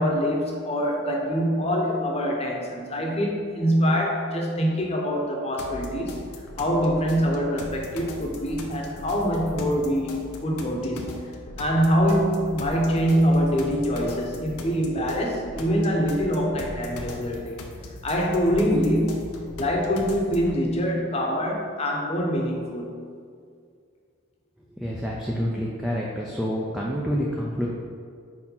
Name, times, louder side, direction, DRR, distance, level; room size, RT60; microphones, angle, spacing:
voice 1, 0.0-6.2 6.6-11.2 11.6-17.6 18.0-23.0, equal, 30° left, -1 dB, 0.9 m, -24 dB
sound 1, 5.6-20.6, left 2 dB, 85° left, 0.8 m, -39 dB
voice 2, 24.8-27.7, equal, ahead, -4 dB, 0.4 m, -28 dB
4.8 x 4.7 x 5.5 m, 2.2 s
head